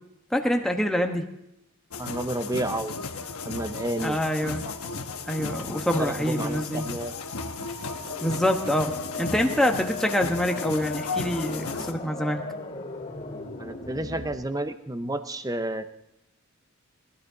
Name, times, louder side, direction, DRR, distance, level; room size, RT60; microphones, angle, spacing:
voice 1, 0.3-1.2 4.0-6.9 8.2-8.9 9.2-12.4, equal, ahead, 2 dB, 1.2 m, -26 dB
sound 1, 1.9-11.9, left 4 dB, 80° left, 1.1 m, -34 dB
voice 2, 2.0-2.9 3.4-4.2 6.0-7.1 13.6-15.8, right 1 dB, 15° right, 10 dB, 0.7 m, -31 dB
sound 2, 7.9-14.3, left 3 dB, 30° left, 2.7 m, -37 dB
20.5 x 13.0 x 4.0 m, 0.81 s
head